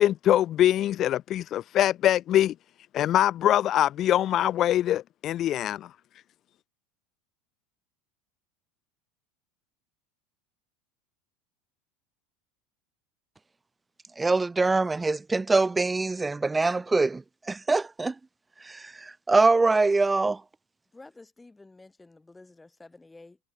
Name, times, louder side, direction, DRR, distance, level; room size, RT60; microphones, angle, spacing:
voice 1, 0.0-2.5 2.9-5.9, left 12 dB, 45° left, 0.9 m, -23 dB
voice 2, 14.2-18.1 18.7-20.4, right 3 dB, 15° right, 0.6 m, -24 dB
voice 3, 20.9-23.4, left 2 dB, 10° left, 6.6 m, -51 dB
supercardioid pair, 105°, 0 cm